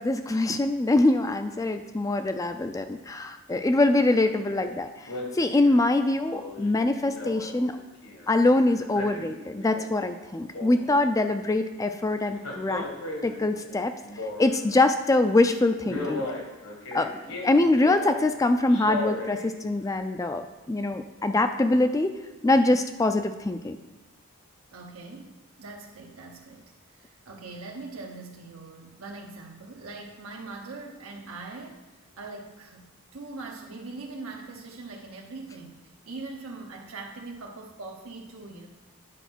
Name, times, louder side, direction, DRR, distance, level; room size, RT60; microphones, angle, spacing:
voice 1, 0.0-4.9 5.3-7.8 8.3-12.9 13.2-13.9 14.4-16.3 16.9-22.1 22.4-23.8, left 2 dB, 15° left, 8 dB, 0.3 m, -24 dB
Male speech man speaking, 3.6-3.9 4.2-4.7 5.1-8.3 8.7-10.1 10.3-11.2 12.3-14.7 15.2-15.4 15.8-18.2 18.7-19.4 19.9-20.0, left 2 dB, 75° left, 1.7 m, -37 dB
voice 2, 24.7-25.3 25.6-26.6 26.9-31.8 32.2-32.9 33.1-38.7, right 3 dB, 85° right, 0 dB, 0.9 m, -41 dB
9.2 x 4.4 x 6.0 m, 1.1 s
head